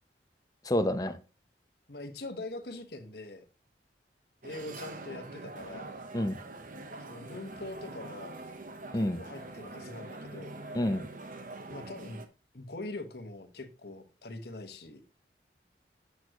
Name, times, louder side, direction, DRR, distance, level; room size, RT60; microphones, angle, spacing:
voice 1, 0.6-1.2 6.1-6.4 8.9-9.2 10.7-11.0, left 1 dB, 20° left, 0.7 m, -28 dB
voice 2, 1.9-3.4 4.4-5.9 7.0-8.4 8.9-10.6 11.7-12.2 12.5-15.0, left 2 dB, 65° left, 1.3 m, -43 dB
sound 1, 4.4-12.3, right 2 dB, 50° right, 0.9 m, -44 dB
8.6 x 6.2 x 3.0 m
head